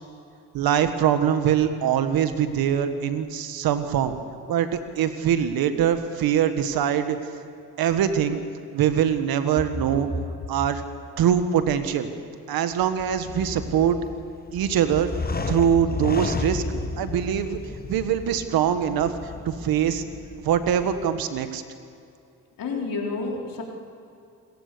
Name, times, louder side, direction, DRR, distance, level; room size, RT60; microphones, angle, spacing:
voice 1, 0.5-4.2 4.5-7.2 7.8-8.4 8.7-10.1 10.5-10.8 11.2-12.1 12.5-14.0 14.5-15.1 15.5-17.6 17.9-20.0 20.4-21.6, right 9 dB, 75° right, 9 dB, 1.6 m, -23 dB
sound 1, 12.7-21.2, left 3 dB, 25° left, 1.5 m, -33 dB
voice 2, 22.6-23.6, left 3 dB, 65° left, 0 dB, 4.2 m, -30 dB
27.0 x 15.0 x 6.9 m, 2.6 s
supercardioid pair, 60°, 36 cm